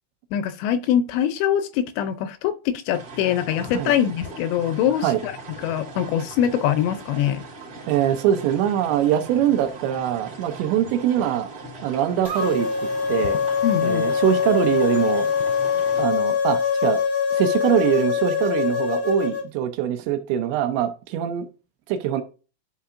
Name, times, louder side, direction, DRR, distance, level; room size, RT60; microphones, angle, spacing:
voice 1, 0.3-5.4 5.6-7.4 13.6-14.1, left 10 dB, 80° left, 2.6 m, -23 dB
sound 1, 2.9-16.1, right 2 dB, 40° right, 2.5 m, -40 dB
voice 2, 7.9-11.5 11.8-12.7 13.1-13.4 13.8-15.3 16.0-17.0 17.3-21.5 21.9-22.2, right 10 dB, 80° right, 2.8 m, -23 dB
sound 2, 12.2-19.4, left 7 dB, 55° left, 0.6 m, -23 dB
11.0 x 5.4 x 2.5 m
omnidirectional pair, 5.4 m